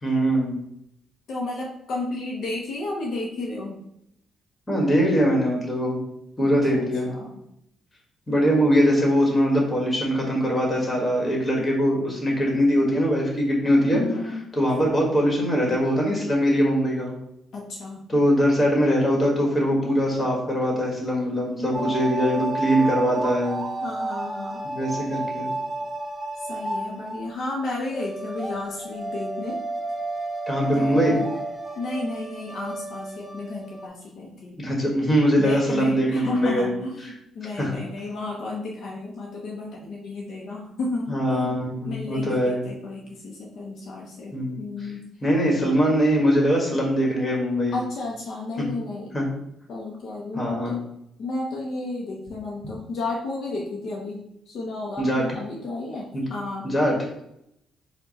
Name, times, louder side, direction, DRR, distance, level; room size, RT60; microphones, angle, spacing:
voice 1, 0.0-0.5 4.7-6.0 6.4-7.1 8.3-14.0 14.6-17.1 18.1-23.6 24.6-25.5 30.5-31.2 34.6-36.7 37.6-37.7 41.1-42.6 44.3-44.5 45.2-47.7 49.1-49.2 50.3-50.7 55.0-55.3 56.1-56.2 56.6-56.9, equal, 25° left, -1 dB, 1.5 m, -22 dB
voice 2, 1.3-3.8 6.4-7.5 13.9-14.4 17.5-18.0 23.8-24.6 26.5-29.6 30.7-31.3 31.8-34.6 35.4-45.0 47.7-49.2 49.7-50.8 51.2-56.7, left 2 dB, 65° left, -2 dB, 0.7 m, -32 dB
sound 1, 21.7-27.6 27.9-33.9, right 2 dB, 25° right, 0.7 m, -31 dB
4.5 x 2.3 x 4.1 m, 0.79 s
cardioid pair, 90°, 0 cm